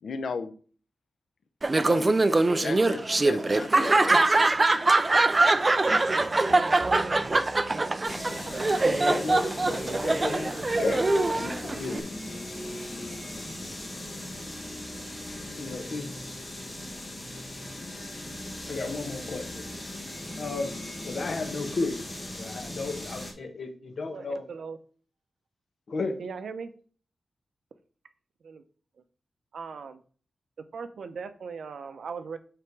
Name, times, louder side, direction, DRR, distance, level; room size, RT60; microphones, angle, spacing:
voice 1, 0.0-0.5 1.8-2.1 2.6-4.2, left 5 dB, 70° left, 9 dB, 0.7 m, -36 dB
Laughter, 1.6-12.0, right 2 dB, 25° right, 0.4 m, -23 dB
sound 1, 2.5-14.3, right 2 dB, 50° right, 2.4 m, -49 dB
sound 2, 8.0-23.3, left 1 dB, 20° left, 1.6 m, -39 dB
voice 2, 8.8-10.5 10.8-11.1 11.3-12.0 15.6-16.1 18.7-19.6 20.4-20.7 21.0-22.0 22.4-24.4 25.9-26.2, left 3 dB, 55° left, 4 dB, 1.3 m, -33 dB
voice 3, 24.1-24.8 26.2-26.7 28.4-28.6 29.5-30.0 30.7-32.4, right 5 dB, 75° right, 10 dB, 0.6 m, -38 dB
7.9 x 3.5 x 4.7 m, 0.42 s
wide cardioid pair, 160°, 0 cm